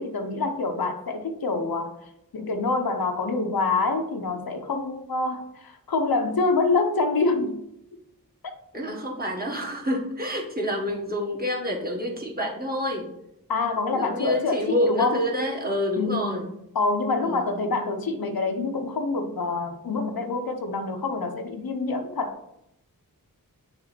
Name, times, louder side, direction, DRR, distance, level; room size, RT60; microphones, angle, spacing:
voice 1, 0.0-2.0 2.3-7.6 13.5-15.2 16.0-22.4, left 3 dB, 80° left, 0.8 m, -26 dB
voice 2, 8.7-13.1 13.9-16.5 17.2-17.5, left 1 dB, 25° right, 1.6 m, -28 dB
6.7 x 3.4 x 4.3 m
wide cardioid pair, 50°, 35 cm